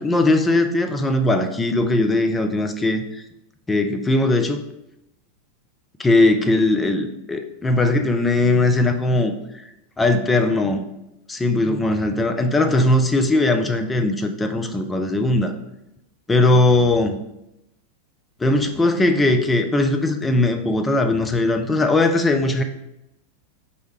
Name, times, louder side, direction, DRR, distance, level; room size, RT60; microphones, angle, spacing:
voice 1, 0.0-3.0 3.7-4.6 6.0-9.6 10.0-10.8 11.3-15.5 16.3-17.2 18.4-22.6, left 2 dB, 10° left, 6 dB, 0.4 m, -19 dB
4.7 x 2.7 x 3.1 m, 0.85 s
figure-of-eight pair, 90°, 0 cm